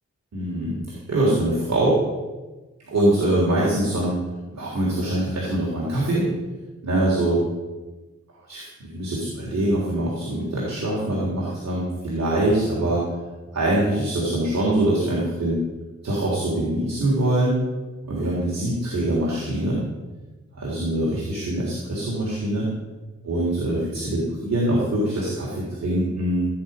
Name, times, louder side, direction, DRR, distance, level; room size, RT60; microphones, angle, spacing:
voice 1, 0.3-2.0 2.9-4.2 4.5-6.3 6.8-7.4 8.5-13.0 13.5-15.6 16.0-17.6 18.1-19.8 20.5-22.7 23.2-26.5, right 1 dB, 60° right, -6 dB, 3.7 m, -23 dB
16.5 x 9.1 x 5.5 m, 1.2 s
wide cardioid pair, 180°, 29 cm